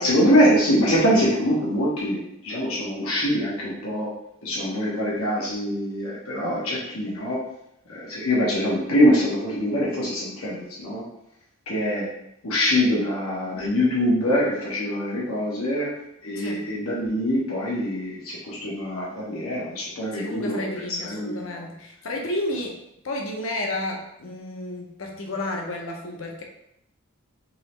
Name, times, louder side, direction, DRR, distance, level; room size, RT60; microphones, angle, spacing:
voice 1, 0.0-4.1 4.4-7.4 7.9-11.0 11.7-12.1 12.4-15.9 16.2-21.6, equal, 85° left, -5 dB, 1.2 m, -24 dB
voice 2, 20.1-22.8 23.0-26.4, left 1 dB, 70° left, 1 dB, 0.8 m, -31 dB
3.9 x 2.9 x 3.2 m, 0.77 s
head